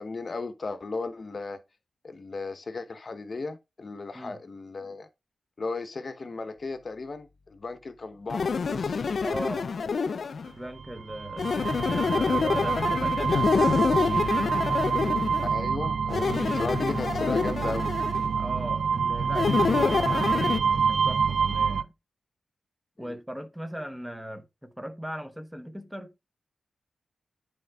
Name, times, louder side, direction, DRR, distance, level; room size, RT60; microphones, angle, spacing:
voice 1, 0.0-1.6 2.0-5.1 5.6-9.0 15.4-17.9 23.0-23.2, left 3 dB, 35° left, 1.0 m, -35 dB
sound 1, 8.3-10.5 11.4-15.5 16.1-18.3 19.3-20.6, left 5 dB, 50° left, 0.5 m, -27 dB
voice 2, 9.2-9.7 10.6-13.9 18.4-21.9 23.0-26.1, equal, 5° right, 1.0 m, -38 dB
sound 2, 10.8-21.8, right 6 dB, 55° right, 0.6 m, -27 dB
10.5 x 4.5 x 3.6 m
wide cardioid pair, 165°, 0 cm